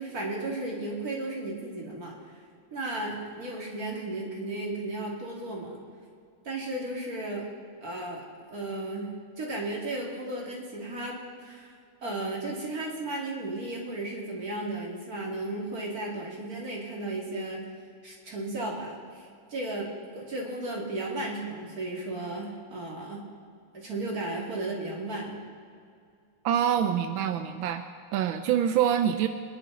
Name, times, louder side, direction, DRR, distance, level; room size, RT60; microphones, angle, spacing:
voice 1, 0.0-2.1 2.7-5.8 6.4-7.5 7.8-8.2 8.5-9.1 9.4-11.7 12.0-17.6 18.0-19.9 20.1-23.2 23.7-25.4, right 2 dB, 45° right, -3 dB, 3.1 m, -34 dB
voice 2, 26.4-27.8 28.1-29.3, right 9 dB, 90° right, 8 dB, 1.4 m, -25 dB
24.5 x 10.5 x 4.0 m, 2.3 s
omnidirectional pair, 2.1 m